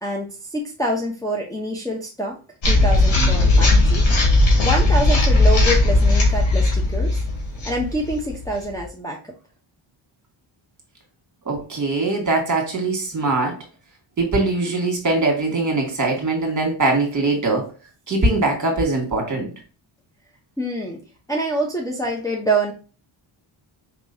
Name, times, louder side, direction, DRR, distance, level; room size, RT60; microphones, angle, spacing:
voice 1, 0.0-2.4 2.7-4.1 4.6-7.2 7.6-9.3 20.6-21.0 21.3-22.7, right 1 dB, 5° left, -2 dB, 0.8 m, -26 dB
sound 1, 2.6-8.8, left 2 dB, 70° left, 1.8 m, -17 dB
voice 2, 11.5-13.6 14.2-17.7 18.1-19.5, right 2 dB, 40° right, 1 dB, 1.7 m, -21 dB
4.7 x 3.0 x 2.7 m, 0.35 s
cardioid pair, 90°, 49 cm